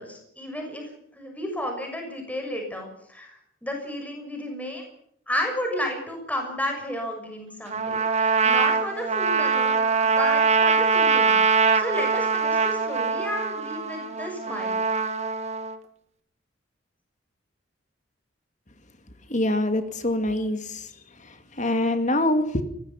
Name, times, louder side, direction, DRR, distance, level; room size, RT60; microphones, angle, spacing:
voice 1, 0.0-4.8 5.3-14.8, left 1 dB, 10° left, 2 dB, 6.4 m, -32 dB
Trumpet, 7.7-15.8, right 5 dB, 35° right, 2.0 m, -23 dB
voice 2, 19.3-20.9 21.2-22.6, left 1 dB, 40° left, 8 dB, 2.3 m, -25 dB
24.0 x 20.5 x 5.8 m, 0.72 s
head